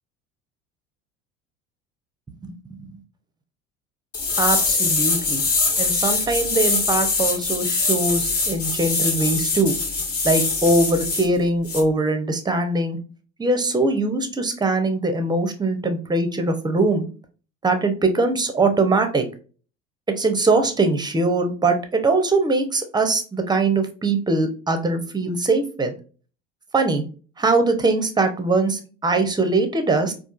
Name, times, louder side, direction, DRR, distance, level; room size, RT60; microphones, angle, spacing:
sound 1, 4.1-11.3 11.7-11.8, left 3 dB, 40° left, 1.3 m, -23 dB
voice 1, 4.4-5.4 5.8-9.7 10.2-13.0 13.4-17.0 17.6-19.2 20.2-25.9 26.7-27.0 27.4-30.1, right 2 dB, 10° right, 7 dB, 0.7 m, -21 dB
4.3 x 2.4 x 2.4 m, 0.36 s
figure-of-eight pair, 65°, 37 cm